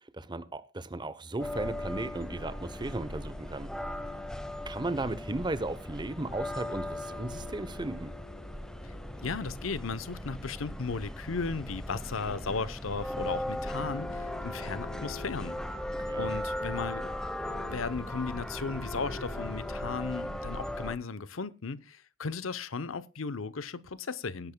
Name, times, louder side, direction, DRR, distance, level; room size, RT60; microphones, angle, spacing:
voice 1, 0.1-3.7 4.7-8.1 16.0-16.3, right 2 dB, 20° right, 0.9 m, -35 dB
sound 1, 1.4-21.0, left 1 dB, 5° left, 1.0 m, -37 dB
voice 2, 9.2-15.6 16.2-17.1 17.7-24.5, left 4 dB, 90° left, 0.8 m, -36 dB
19.0 x 10.5 x 2.3 m
head